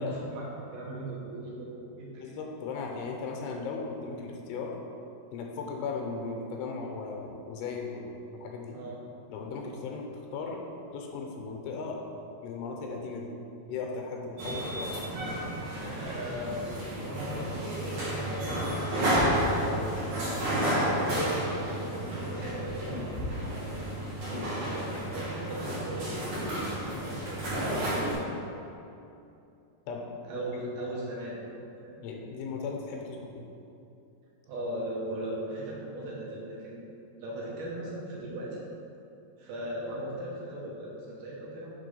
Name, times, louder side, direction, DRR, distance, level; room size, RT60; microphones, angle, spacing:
voice 1, 0.0-2.3 8.7-9.0 15.9-18.8 19.1-21.1 21.9-23.9 24.4-28.3 30.3-31.4 31.8-32.0 34.5-36.9 37.2-38.6 39.4-41.7, right 1 dB, 75° right, -6 dB, 3.0 m, -38 dB
voice 2, 2.2-4.7 5.3-8.8 9.3-10.0 10.3-10.6 10.9-12.0 12.4-13.3 13.7-15.0 24.3-24.5 29.9-30.0 30.3-30.5 32.0-33.3, left 4 dB, 85° left, 1 dB, 2.7 m, -37 dB
sound 1, 14.4-28.1, right 1 dB, 55° right, 2.1 m, -31 dB
6.7 x 3.5 x 5.4 m, 2.7 s
omnidirectional pair, 4.6 m